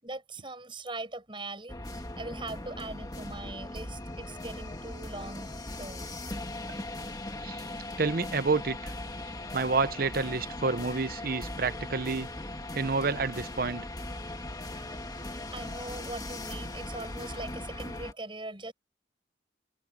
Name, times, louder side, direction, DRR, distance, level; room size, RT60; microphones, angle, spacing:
voice 1, 0.0-6.0 7.8-7.9 9.5-9.6 12.9-13.0 14.7-18.7, right 2 dB, 25° right, 6.9 m, -41 dB
sound 1, 1.7-18.1, left 1 dB, 20° left, 2.0 m, -39 dB
voice 2, 8.0-8.9 9.5-12.3 12.7-13.9, right 4 dB, 50° right, 0.8 m, -29 dB
head